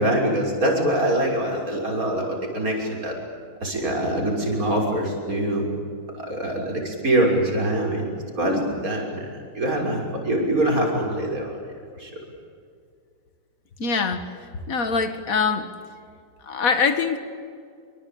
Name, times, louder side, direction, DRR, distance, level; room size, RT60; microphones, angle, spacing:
voice 1, 0.0-3.1 3.6-5.7 6.2-9.3 9.5-11.5 11.9-12.1, right 1 dB, 40° right, 0 dB, 6.5 m, -24 dB
voice 2, 13.8-14.3 14.7-15.7 16.4-17.2, left 5 dB, 45° left, 9 dB, 2.2 m, -23 dB
26.5 x 25.0 x 8.7 m, 2.3 s
omnidirectional pair, 2.2 m